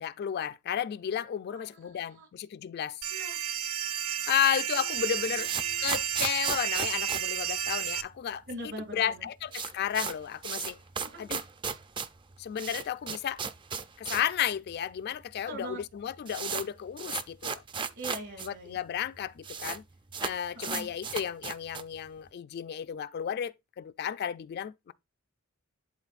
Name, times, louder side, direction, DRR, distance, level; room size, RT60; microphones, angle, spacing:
voice 1, 0.0-3.0 4.3-5.5 5.8-8.4 8.9-10.8 11.2-11.4 12.4-13.4 14.0-17.6 18.4-19.8 20.2-24.9, left 9 dB, 50° left, 0.3 m, -33 dB
voice 2, 1.5-2.3 3.1-3.4 4.8-5.8 8.5-9.2 11.0-11.3 15.5-15.8 18.0-18.8 20.5-20.9, right 1 dB, 60° right, 2.2 m, -42 dB
sound 1, 3.0-8.0, right 9 dB, 90° right, 0.5 m, -32 dB
sound 2, 5.0-8.2 8.5-8.6 8.8-8.9 9.2-14.4 14.7-14.8 15.5-15.6 15.8-18.5 18.8-18.9 19.0-19.8 20.1-22.0, right 6 dB, 25° right, 0.4 m, -36 dB
11.5 x 3.8 x 2.4 m
head